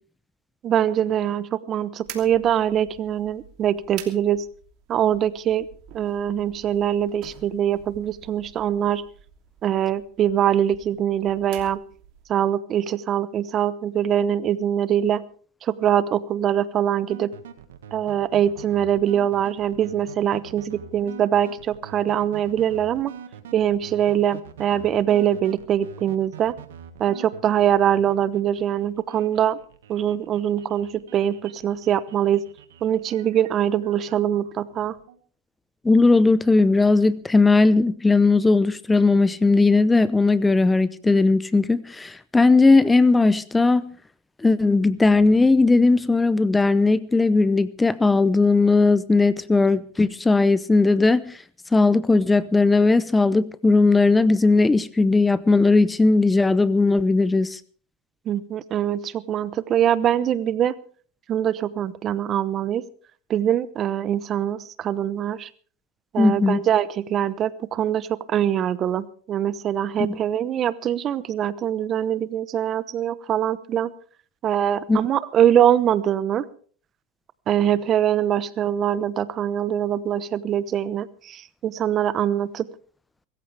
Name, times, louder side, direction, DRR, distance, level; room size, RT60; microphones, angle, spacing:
voice 1, 0.6-4.4 4.9-5.7 5.9-9.0 9.6-11.8 12.3-15.2 15.6-17.3 17.9-23.1 23.5-26.5 27.0-29.6 29.9-32.4 32.8-35.0 58.3-60.7 61.3-62.8 63.3-65.5 66.1-73.9 74.4-76.5 77.5-82.7, right 10 dB, 40° right, 0.9 m, -23 dB
sound 1, 2.0-12.4, right 10 dB, 55° right, 2.9 m, -47 dB
sound 2, 17.1-35.2, right 8 dB, 85° right, 1.8 m, -44 dB
voice 2, 35.8-43.9 44.4-51.4 51.7-57.6 66.2-66.6 70.0-70.2 74.9-75.0, left 3 dB, 10° left, 0.7 m, -18 dB
23.5 x 14.5 x 3.4 m
hypercardioid pair, 110°, 0 cm